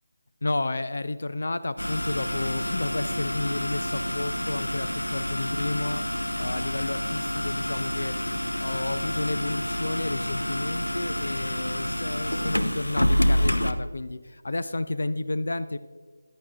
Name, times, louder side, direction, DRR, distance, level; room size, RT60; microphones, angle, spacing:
voice 1, 0.4-15.8, left 2 dB, 60° left, 13 dB, 0.4 m, -31 dB
sound 1, 1.8-13.7, equal, 90° left, 0.8 m, -28 dB
14.0 x 11.0 x 2.5 m, 1.5 s
figure-of-eight pair, 160°, 0 cm